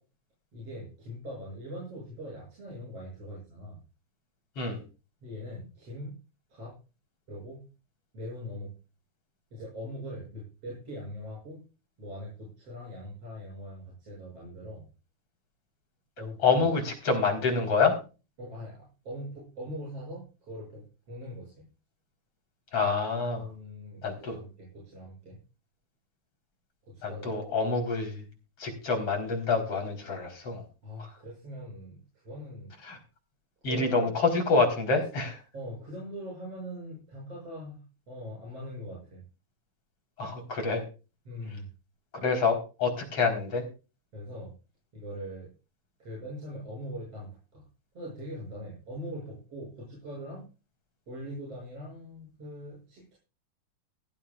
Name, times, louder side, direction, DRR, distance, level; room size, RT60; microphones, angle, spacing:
voice 1, 0.5-3.8 5.2-6.2 6.5-6.8 7.3-7.7 8.1-8.7 9.5-11.6 12.0-14.9 16.2-16.7 18.4-21.6 23.3-25.4 26.8-27.3 30.8-32.7 33.6-34.2 35.5-39.2 41.3-41.7 44.1-44.5 44.9-45.5 46.0-47.6 47.9-50.5 51.1-53.2, equal, 50° right, -5 dB, 8.9 m, -41 dB
voice 2, 16.4-18.0 22.7-23.5 24.0-24.4 27.0-28.3 28.6-30.6 31.0-31.1 32.8-33.0 33.6-35.4 40.2-40.8 42.1-43.6, left 4 dB, 45° left, 3 dB, 5.3 m, -27 dB
18.0 x 15.5 x 2.5 m, 0.33 s
omnidirectional pair, 3.6 m